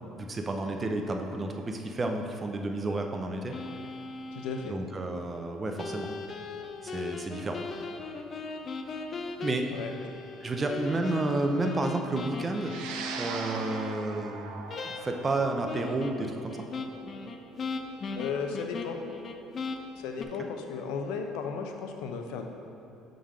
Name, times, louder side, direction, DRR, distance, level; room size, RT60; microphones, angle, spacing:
voice 1, 0.2-3.5 4.7-6.1 6.8-7.6 9.4-9.7 10.4-12.8 13.2-14.5 14.8-16.7 20.4-20.5, right 2 dB, 25° right, 4 dB, 0.5 m, -31 dB
sound 1, 3.5-4.7 5.8-14.0 14.7-15.3 15.7-20.3, left 4 dB, 40° left, 0.4 m, -38 dB
voice 2, 4.3-4.8 9.7-9.9 18.1-19.0 20.0-22.5, left 5 dB, 85° left, 4 dB, 0.6 m, -35 dB
sound 2, 12.6-21.2, right 5 dB, 80° right, 0.5 m, -42 dB
7.0 x 3.8 x 4.9 m, 2.8 s
cardioid pair, 120°, 0 cm